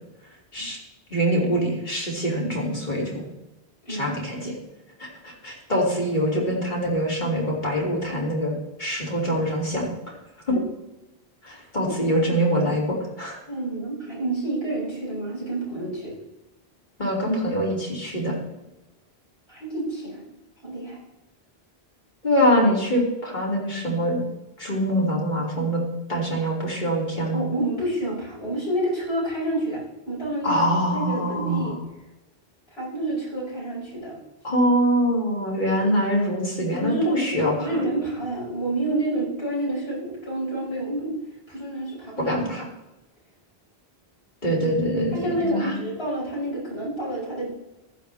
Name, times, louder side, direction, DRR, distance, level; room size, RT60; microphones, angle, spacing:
voice 1, 1.1-3.2 3.9-4.5 5.0-9.9 10.5-10.6 11.4-13.4 17.0-18.4 22.2-24.2 24.6-25.8 26.1-27.4 30.4-31.8 34.4-37.8 42.2-42.6 44.4-45.7, equal, 45° left, -3 dB, 3.4 m, -24 dB
voice 2, 3.9-4.5 11.9-12.2 13.5-16.1 19.5-20.2 20.6-21.0 27.3-29.8 30.1-31.8 32.7-34.2 36.8-37.2 37.6-41.1 41.5-42.6 45.1-47.5, right 1 dB, 80° left, -7 dB, 6.1 m, -29 dB
15.0 x 12.0 x 3.5 m, 1.0 s
omnidirectional pair, 1.0 m